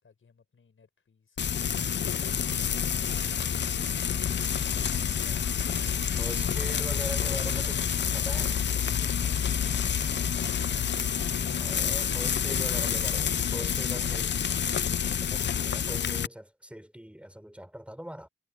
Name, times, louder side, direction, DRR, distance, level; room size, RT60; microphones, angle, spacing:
voice 1, 0.0-3.6, left 5 dB, 75° left, 5.4 m, -57 dB
Frying (food), 1.4-16.3, left 8 dB, 60° left, 0.5 m, -28 dB
sound 1, 2.5-13.2, right 5 dB, 55° right, 3.2 m, -47 dB
voice 2, 5.0-5.5 6.2-8.6 11.6-18.3, equal, 5° right, 3.7 m, -42 dB
wide cardioid pair, 110°, 21 cm